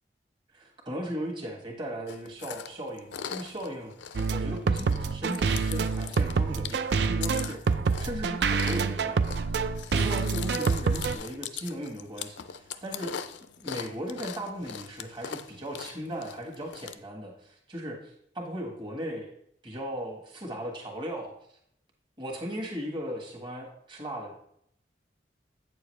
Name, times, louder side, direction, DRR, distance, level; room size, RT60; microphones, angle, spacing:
voice 1, 0.5-3.9 4.3-7.6 8.0-9.3 9.9-13.1 13.6-19.3 19.6-21.3 22.2-24.3, equal, 25° right, -1 dB, 1.5 m, -37 dB
Chewing mastication, 2.1-16.9, left 8 dB, 80° left, 0.5 m, -41 dB
sound 1, 4.1-11.1, right 5 dB, 65° right, 0.4 m, -27 dB
8.5 x 6.9 x 3.2 m, 0.71 s
head